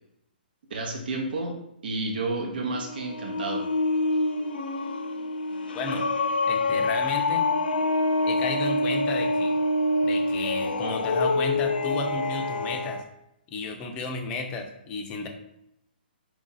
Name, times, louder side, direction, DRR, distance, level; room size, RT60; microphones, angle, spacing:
voice 1, 0.7-3.6, right 2 dB, 65° right, 1 dB, 0.8 m, -31 dB
sound 1, 2.5-13.0, left 2 dB, 70° left, 0.6 m, -26 dB
voice 2, 5.7-6.1 6.5-7.5 8.3-9.6 10.0-13.0 13.5-15.3, left 3 dB, 20° left, 3 dB, 0.5 m, -33 dB
4.6 x 2.5 x 4.0 m, 0.79 s
hypercardioid pair, 160°, 6 cm